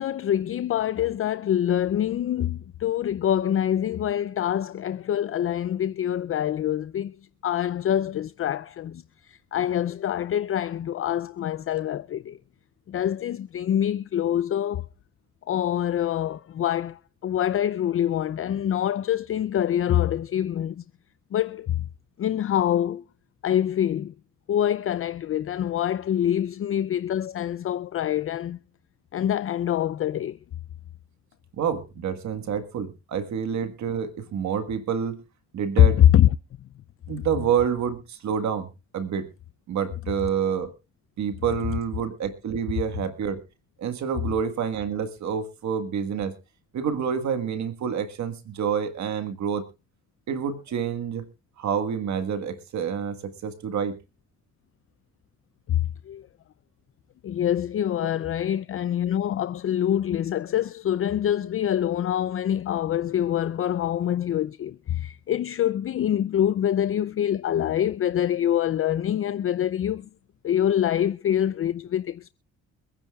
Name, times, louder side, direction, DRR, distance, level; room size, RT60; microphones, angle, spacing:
voice 1, 0.0-7.2 7.4-12.4 12.9-14.9 15.5-20.8 21.3-21.9 22.2-23.0 23.4-24.1 24.5-28.6 29.1-30.4 35.8-36.3 55.7-56.3 57.2-70.1 70.4-72.3, left 10 dB, 45° left, 0.5 m, -25 dB
voice 2, 31.6-35.2 35.5-36.0 37.1-38.7 38.9-39.3 39.7-40.7 41.2-43.4 43.8-46.3 46.7-49.7 50.3-51.3 51.6-54.0, right 7 dB, 65° right, 1.6 m, -28 dB
25.0 x 10.0 x 2.4 m
cardioid pair, 90°, 30 cm